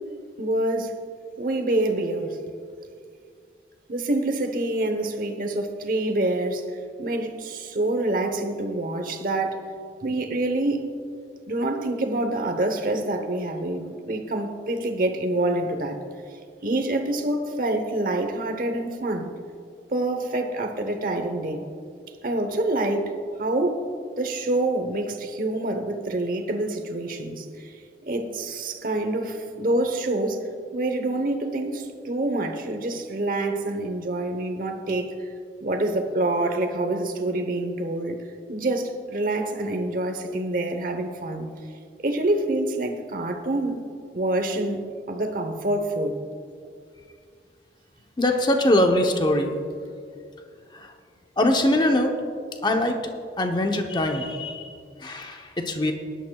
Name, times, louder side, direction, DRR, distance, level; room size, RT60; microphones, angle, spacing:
voice 1, 0.4-1.0 1.4-2.4 3.9-6.7 7.0-9.7 10.0-11.0 11.5-16.0 16.6-19.3 19.9-21.7 22.2-23.1 23.4-23.9 24.2-27.8 28.1-30.4 30.7-35.3 35.6-38.2 38.5-41.5 42.0-43.8 44.1-46.2, right 2 dB, 50° right, 1.0 m, -26 dB
voice 2, 48.2-49.6 50.7-50.9 51.4-52.2 52.6-53.0 53.4-55.9, left 1 dB, 25° left, 0.8 m, -22 dB
18.5 x 11.5 x 2.3 m
head